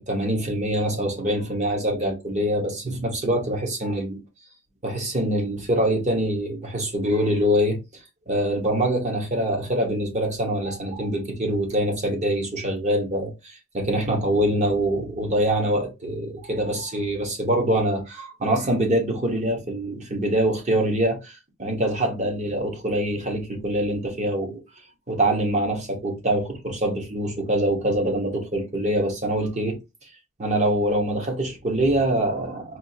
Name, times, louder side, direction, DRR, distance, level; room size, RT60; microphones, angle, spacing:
voice 1, 0.0-4.2 4.8-7.8 8.3-24.6 25.1-29.8 30.4-32.8, right 1 dB, 35° right, 1.0 m, -24 dB
4.3 x 2.4 x 2.7 m
head